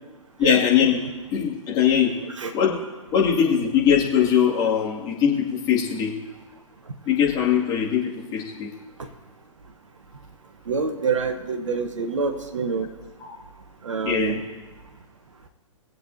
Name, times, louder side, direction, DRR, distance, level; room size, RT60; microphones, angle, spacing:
voice 1, 0.4-1.0 1.3-2.1 2.5-2.7 3.1-6.1 7.1-8.7 13.2-13.4 14.1-14.4, left 8 dB, 25° left, -4 dB, 2.4 m, -21 dB
voice 2, 10.7-12.9 13.8-14.4, right 5 dB, 65° right, 7 dB, 1.2 m, -26 dB
21.5 x 8.0 x 2.8 m, 1.3 s
figure-of-eight pair, 115°, 17 cm